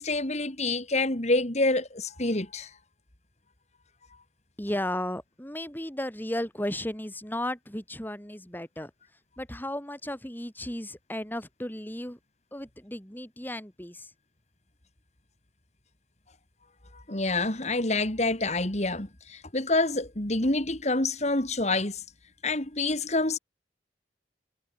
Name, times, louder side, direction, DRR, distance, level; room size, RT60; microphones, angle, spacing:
voice 1, 0.0-2.7 16.9-22.0 22.4-23.4, left 2 dB, 40° left, 3.0 m, -27 dB
voice 2, 4.6-8.9 9.4-12.2 12.5-14.1, left 1 dB, 10° left, 3.5 m, -34 dB
head